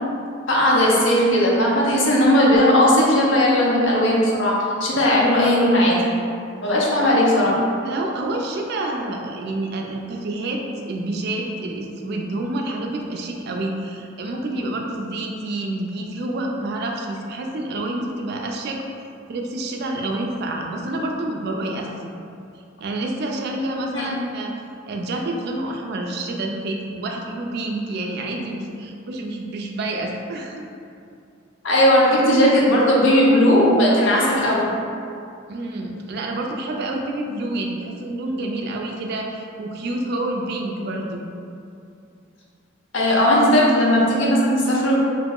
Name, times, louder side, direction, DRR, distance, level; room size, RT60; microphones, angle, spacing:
voice 1, 0.5-6.1 6.6-7.5 23.9-24.1 31.6-34.7 42.9-45.0, left 1 dB, 65° left, -4 dB, 0.6 m, -17 dB
voice 2, 7.8-18.8 19.3-22.1 22.8-24.5 24.9-30.6 35.5-41.2, right 2 dB, 55° right, 1 dB, 0.3 m, -28 dB
2.9 x 2.0 x 3.5 m, 2.5 s
head